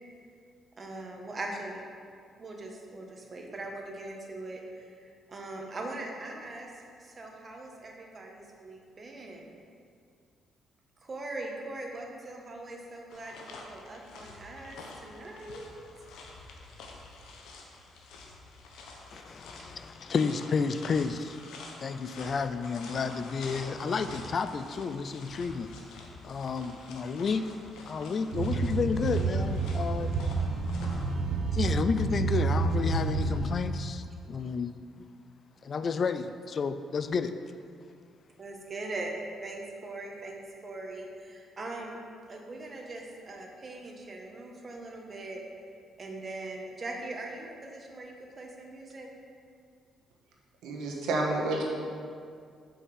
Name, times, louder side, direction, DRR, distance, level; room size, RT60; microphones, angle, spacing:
voice 1, 0.8-1.8 2.4-9.5 11.0-13.3 13.7-15.7 30.2-30.3 38.4-42.0 42.3-45.4 46.0-49.1, right 2 dB, 35° right, 0 dB, 1.4 m, -41 dB
sound 1, 13.1-31.1, left 3 dB, 85° left, 1.0 m, -47 dB
voice 2, 19.1-21.4 21.8-25.7 26.2-27.5 27.9-30.2 31.5-35.1 35.6-37.4, left 5 dB, 45° left, 10 dB, 0.4 m, -31 dB
sound 2, 28.3-33.5, right 3 dB, 70° right, 1.1 m, -29 dB
voice 3, 50.6-51.6, right 2 dB, 85° right, -1 dB, 1.3 m, -29 dB
5.6 x 5.6 x 6.3 m, 2.3 s
cardioid pair, 90°, 0 cm